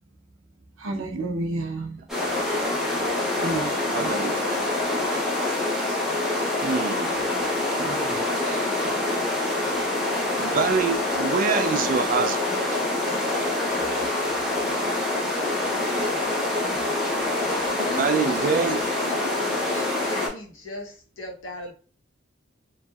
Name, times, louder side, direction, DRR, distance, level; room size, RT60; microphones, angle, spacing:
voice 1, 0.8-2.0 3.3-4.4 7.7-9.0, right 2 dB, 80° right, 0.6 m, -32 dB
sound 1, 2.1-20.3, left 2 dB, ahead, 0.9 m, -25 dB
voice 2, 3.9-4.6 6.6-7.3 10.4-12.4 17.9-18.8, right 5 dB, 45° right, 0.3 m, -25 dB
voice 3, 17.8-19.2 19.7-21.7, equal, 80° left, 0.9 m, -37 dB
3.1 x 2.6 x 2.3 m
head